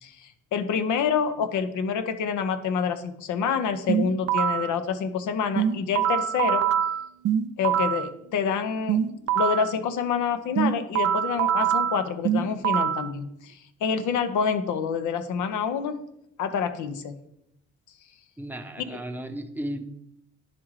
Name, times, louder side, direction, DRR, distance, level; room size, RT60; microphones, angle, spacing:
voice 1, 0.0-6.7 7.6-9.0 9.3-16.0 16.4-17.2 18.9-19.0, left 6 dB, 80° left, 10 dB, 0.7 m, -27 dB
sound 1, 3.9-4.7 5.6-8.1 8.9-9.7 10.6-13.1, right 9 dB, 55° right, 0.5 m, -24 dB
voice 2, 18.4-19.8, right 1 dB, 5° right, 5 dB, 0.7 m, -34 dB
10.5 x 3.7 x 3.1 m, 0.80 s
cardioid pair, 90°, 30 cm